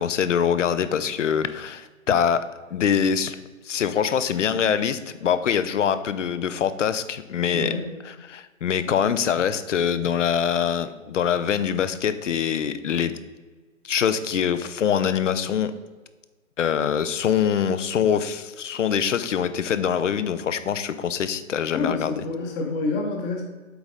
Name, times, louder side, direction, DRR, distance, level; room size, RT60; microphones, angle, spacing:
voice 1, 0.0-2.4 2.7-3.4 3.6-7.7 8.0-13.1 13.8-15.7 16.6-22.2, left 8 dB, 65° left, 12 dB, 0.7 m, -24 dB
voice 2, 7.5-7.9 21.7-23.5, left 3 dB, 15° left, 2 dB, 0.9 m, -28 dB
7.9 x 4.1 x 5.0 m, 1.3 s
figure-of-eight pair, 130°, 40 cm